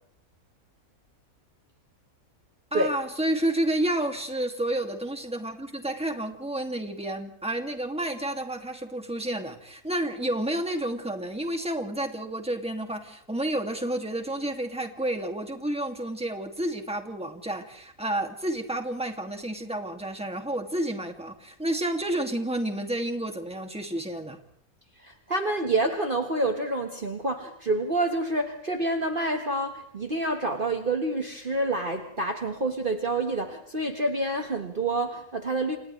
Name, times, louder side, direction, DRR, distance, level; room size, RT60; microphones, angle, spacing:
voice 1, 2.7-24.4, right 1 dB, 5° right, 4 dB, 2.3 m, -30 dB
voice 2, 25.0-35.8, right 2 dB, 35° right, 4 dB, 1.7 m, -28 dB
29.5 x 28.0 x 3.3 m, 0.65 s
omnidirectional pair, 1.6 m